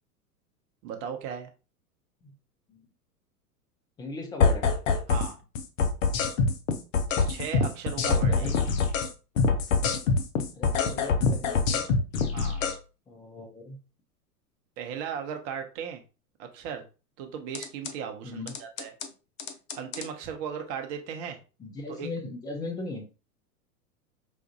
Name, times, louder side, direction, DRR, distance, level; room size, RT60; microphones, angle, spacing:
voice 1, 0.8-1.5 5.1-5.4 7.3-8.5 12.3-12.7 14.8-16.0 16.4-16.8 17.2-18.9 19.8-21.4 21.9-22.1, right 7 dB, 35° right, 0.8 m, -36 dB
voice 2, 4.0-4.7 8.3-8.7 10.5-11.9 13.1-13.8 18.2-18.5 21.6-23.1, left 2 dB, 10° left, 0.4 m, -38 dB
sound 1, 4.4-5.3 5.6-9.1 9.4-12.8 17.5-17.9 18.5-19.1 19.4-20.1, left 4 dB, 55° left, 0.8 m, -25 dB
5.1 x 2.5 x 2.4 m
figure-of-eight pair, 95°, 47 cm